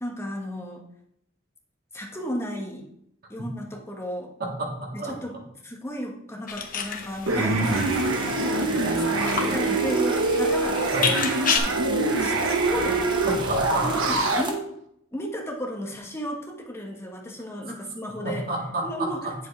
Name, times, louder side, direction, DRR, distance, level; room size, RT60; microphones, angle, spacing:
voice 1, 0.0-0.8 1.9-2.9 3.3-4.3 4.9-5.3 5.6-10.9 12.2-13.0 13.8-14.7 15.1-18.4 18.8-19.3, equal, 15° left, 0 dB, 1.4 m, -34 dB
voice 2, 4.4-5.2 10.9-11.1 13.2-13.9 17.7-17.8 18.2-19.3, right 2 dB, 50° right, -2 dB, 2.2 m, -30 dB
sound 1, 6.5-11.6, left 6 dB, 45° left, 0.9 m, -31 dB
sound 2, 7.3-14.4, right 2 dB, 85° right, 1.0 m, -24 dB
sound 3, 7.6-14.5, right 3 dB, 25° right, 1.0 m, -38 dB
8.2 x 7.5 x 3.2 m, 0.73 s
head